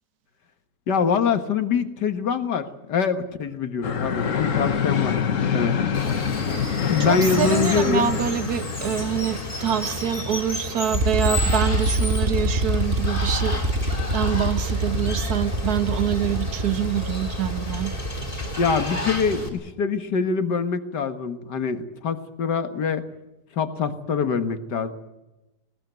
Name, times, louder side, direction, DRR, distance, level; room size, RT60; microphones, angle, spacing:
voice 1, 0.9-5.8 6.8-8.1 18.6-23.0 23.5-25.0, left 5 dB, 80° left, 9 dB, 2.1 m, -24 dB
sound 1, 3.8-10.9, left 7 dB, 50° left, 1.5 m, -26 dB
Water, 5.9-19.5, left 1 dB, 20° left, 3.6 m, -32 dB
voice 2, 7.0-13.6 14.1-17.9, right 9 dB, 65° right, 12 dB, 1.5 m, -26 dB
sound 2, 10.9-19.0, right 1 dB, 35° right, 1.7 m, -26 dB
20.0 x 19.5 x 9.3 m, 1.0 s
omnidirectional pair, 1.8 m